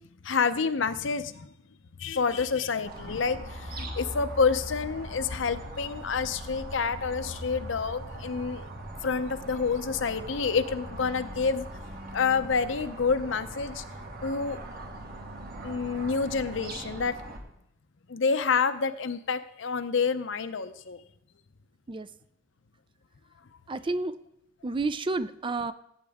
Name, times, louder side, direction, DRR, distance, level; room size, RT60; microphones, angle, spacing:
voice 1, 0.2-1.5 2.0-8.7 9.0-11.7 12.1-13.8 14.2-14.6 15.6-17.2 18.1-21.0, left 5 dB, 70° left, 11 dB, 0.7 m, -28 dB
sound 1, 2.9-17.4, right 1 dB, 50° right, 1.5 m, -40 dB
voice 2, 23.7-24.2 24.6-25.7, right 3 dB, 25° right, 14 dB, 0.4 m, -30 dB
17.0 x 8.9 x 3.5 m, 0.78 s
head